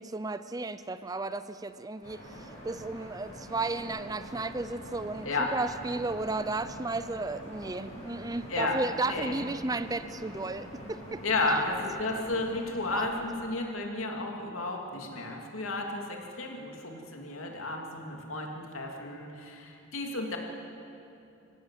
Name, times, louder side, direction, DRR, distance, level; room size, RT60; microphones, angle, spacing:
voice 1, 0.0-11.7 12.9-13.1, right 3 dB, 20° right, 12 dB, 0.5 m, -34 dB
sound 1, 2.0-13.2, equal, 35° left, 6.2 m, -45 dB
voice 2, 9.1-9.4 11.2-20.4, left 2 dB, 85° left, 1 dB, 2.9 m, -33 dB
26.5 x 16.0 x 7.6 m, 2.7 s
head